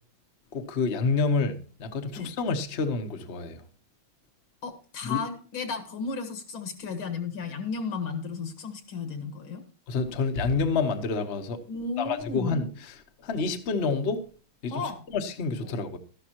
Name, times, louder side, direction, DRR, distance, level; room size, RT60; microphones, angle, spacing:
voice 1, 0.5-3.6 5.1-5.2 9.9-11.6 12.0-12.6 13.2-14.2 14.6-14.7 15.1-16.0, left 4 dB, 40° left, 1.0 m, -28 dB
voice 2, 4.6-9.6 11.7-12.6 14.7-15.1, left 4 dB, 80° left, 2.5 m, -34 dB
13.0 x 12.0 x 2.9 m
omnidirectional pair, 2.2 m